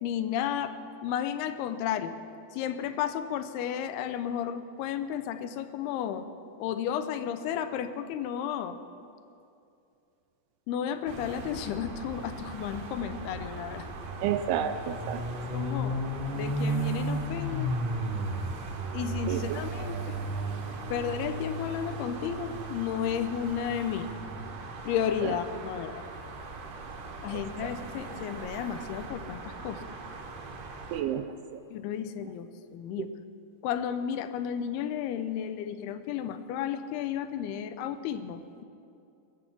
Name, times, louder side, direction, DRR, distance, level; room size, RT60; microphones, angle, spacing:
voice 1, 0.0-2.2 2.5-6.3 6.6-8.8 10.7-13.9 15.5-16.0 16.3-17.7 18.9-20.2 20.9-24.1 24.9-26.0 27.2-29.8 31.7-33.1 33.6-38.6, left 9 dB, 80° left, 10 dB, 2.5 m, -33 dB
sound 1, 11.1-31.0, right 2 dB, 65° right, 1.7 m, -36 dB
voice 2, 14.2-15.2 19.3-19.6 25.2-25.3 30.9-31.2 31.5-31.6, right 9 dB, 80° right, 8 dB, 2.3 m, -30 dB
22.0 x 8.3 x 6.0 m, 2.6 s
omnidirectional pair, 5.0 m